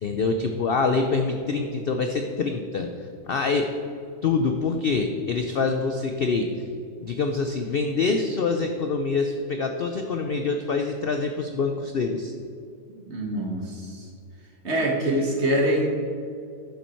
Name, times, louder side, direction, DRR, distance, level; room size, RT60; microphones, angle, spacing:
voice 1, 0.0-2.9 3.3-3.7 4.2-6.5 7.0-12.3, left 4 dB, 65° left, 5 dB, 0.5 m, -25 dB
voice 2, 12.9-14.0 14.6-15.9, right 1 dB, 45° right, -1 dB, 1.9 m, -25 dB
10.5 x 7.2 x 4.4 m, 2.4 s
omnidirectional pair, 1.7 m